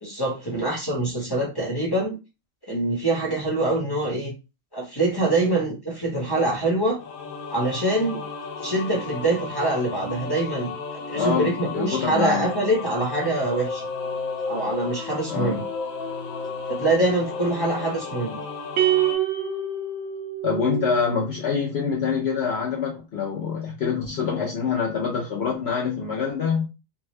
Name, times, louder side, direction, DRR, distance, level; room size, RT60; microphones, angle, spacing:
voice 1, 0.0-2.2 2.7-4.3 4.7-7.0 7.5-8.2 8.6-13.8 14.5-15.6 16.7-18.4, right 2 dB, 20° left, 1.1 m, -24 dB
sound 1, 7.0-19.1, left 4 dB, 85° left, 1.2 m, -33 dB
voice 2, 11.1-12.5 15.3-15.6 20.4-26.7, left 6 dB, 60° left, 0.9 m, -25 dB
sound 2, 18.8-21.2, right 10 dB, 80° right, 1.3 m, -25 dB
3.5 x 2.3 x 3.1 m
omnidirectional pair, 1.4 m